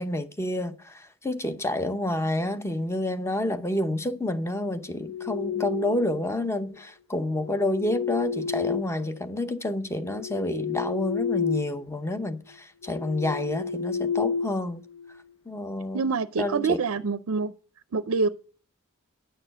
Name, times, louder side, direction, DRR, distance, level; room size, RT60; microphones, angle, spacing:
voice 1, 0.0-14.8 15.5-16.0 16.4-16.8, left 1 dB, 10° left, 0.8 m, -29 dB
sound 1, 4.8-6.3 7.3-9.5 9.9-11.8 12.1-12.3 12.8-15.2, left 6 dB, 80° left, 0.6 m, -31 dB
voice 2, 15.9-17.5 17.9-18.3, right 4 dB, 65° right, 0.5 m, -26 dB
10.0 x 6.7 x 6.4 m
head